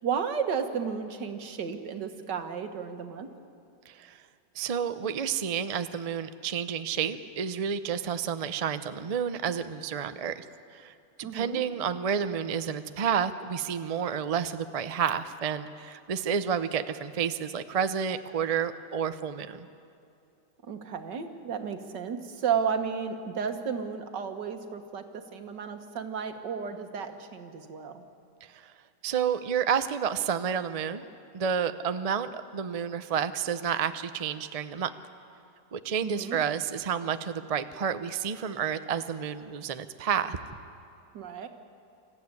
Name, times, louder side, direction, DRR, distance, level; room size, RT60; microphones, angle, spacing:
voice 1, 0.0-3.3 11.2-11.6 20.7-28.0 36.0-36.4 41.1-41.5, right 6 dB, 80° right, 7 dB, 2.0 m, -33 dB
voice 2, 3.9-4.2 4.5-10.5 10.7-19.7 28.4-28.7 29.0-31.1 31.3-34.9 35.7-40.4, right 7 dB, 65° right, 11 dB, 0.3 m, -30 dB
26.0 x 14.5 x 9.7 m, 2.5 s
omnidirectional pair, 1.8 m